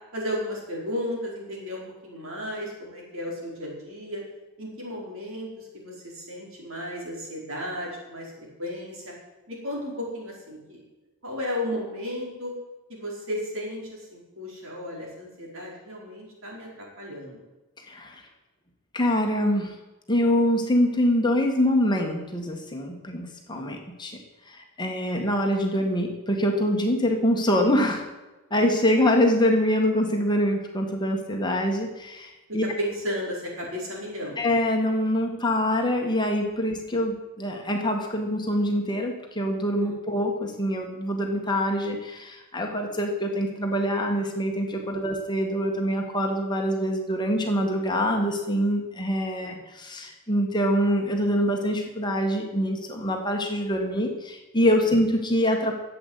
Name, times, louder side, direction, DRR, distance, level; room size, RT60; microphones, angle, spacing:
voice 1, 0.1-4.2 4.6-8.3 8.6-9.1 9.5-10.8 11.2-12.5 12.9-17.4 23.5-23.8 28.6-28.8 32.8-34.4 36.6-36.7 39.8-40.0 49.4-49.6, equal, 60° right, -2 dB, 5.0 m, -34 dB
voice 2, 17.9-18.2 18.9-19.8 20.1-24.2 24.5-28.1 28.5-32.6 34.4-55.7, equal, 20° left, 2 dB, 1.6 m, -25 dB
13.0 x 8.2 x 8.2 m, 1.1 s
head